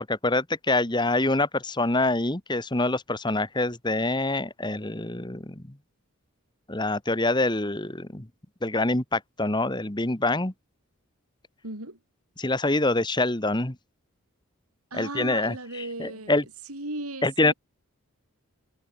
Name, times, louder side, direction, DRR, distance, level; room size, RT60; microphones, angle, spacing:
voice 1, 0.0-5.6 6.7-8.3 8.6-10.5 12.4-13.7 15.0-15.5 16.0-16.4 17.2-17.5, left 2 dB, 20° left, 1.6 m, -25 dB
voice 2, 11.6-12.0 14.9-16.4 16.7-17.5, right 2 dB, 85° right, 6.6 m, -36 dB
head